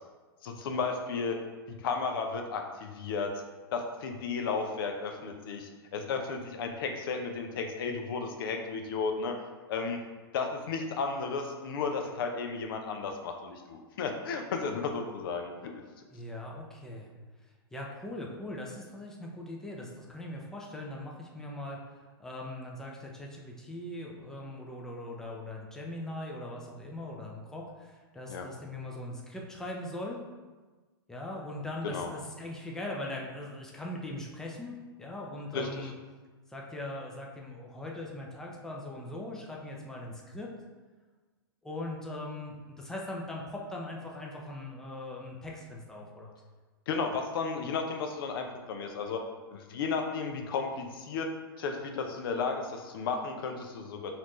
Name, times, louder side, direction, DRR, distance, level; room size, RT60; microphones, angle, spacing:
voice 1, 0.4-1.4 1.7-3.3 3.7-9.3 9.7-10.0 10.3-15.7 28.3-28.5 31.8-32.1 35.5-35.9 46.9-49.2 49.5-51.3 51.6-54.2, left 4 dB, 65° left, 4 dB, 0.5 m, -33 dB
voice 2, 16.1-17.1 17.7-21.8 22.2-30.2 31.1-35.9 36.5-40.5 41.6-46.4, left 1 dB, 5° left, -2 dB, 0.5 m, -40 dB
4.1 x 2.6 x 3.0 m, 1.3 s
hypercardioid pair, 120°, 13 cm